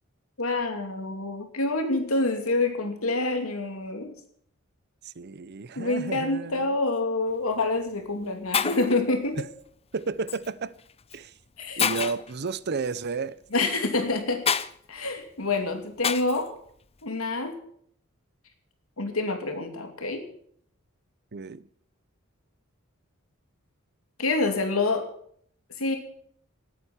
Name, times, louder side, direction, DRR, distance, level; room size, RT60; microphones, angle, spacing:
voice 1, 0.4-4.1 5.8-9.4 11.6-11.8 13.5-14.4 14.9-16.5 17.0-17.6 19.0-20.3 24.2-25.1 25.8-26.0, left 2 dB, 85° left, 2.7 m, -27 dB
voice 2, 5.0-6.8 9.4-9.5 9.9-10.7 11.1-11.3 11.8-13.4 21.3-21.6, right 4 dB, 50° right, 0.6 m, -32 dB
Shatter, 7.3-7.5 8.2-8.3 8.5-9.0 10.3-10.5 11.1-11.2 11.8-12.3 14.5-14.7 16.0-16.4, left 7 dB, 30° left, 0.6 m, -27 dB
17.5 x 9.1 x 7.3 m
head